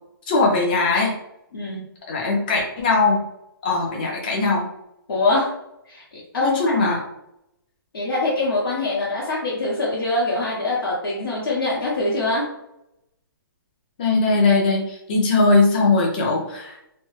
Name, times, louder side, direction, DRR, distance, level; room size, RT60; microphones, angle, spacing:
voice 1, 0.3-1.1 2.1-3.3 3.6-4.7 6.4-7.0 14.0-16.8, left 3 dB, 25° left, -2 dB, 0.4 m, -20 dB
voice 2, 1.5-1.9 5.1-5.5 5.9-6.0 6.3-6.8 7.9-12.5, left 2 dB, 80° left, -7 dB, 0.9 m, -23 dB
2.1 x 2.0 x 3.0 m, 0.83 s
hypercardioid pair, 175°, 12 cm